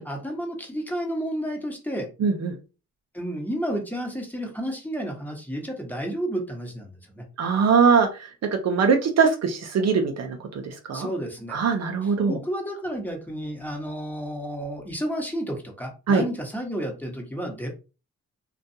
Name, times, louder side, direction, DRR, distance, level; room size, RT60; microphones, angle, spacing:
voice 1, 0.0-2.1 3.1-7.2 10.9-11.6 12.3-17.7, equal, 5° left, 1 dB, 1.0 m, -31 dB
voice 2, 2.2-2.6 7.4-8.3 8.6-11.1 11.5-12.4 16.1-16.2, right 5 dB, 55° right, 4 dB, 0.6 m, -22 dB
2.5 x 2.2 x 2.7 m, 0.32 s
cardioid pair, 65°, 31 cm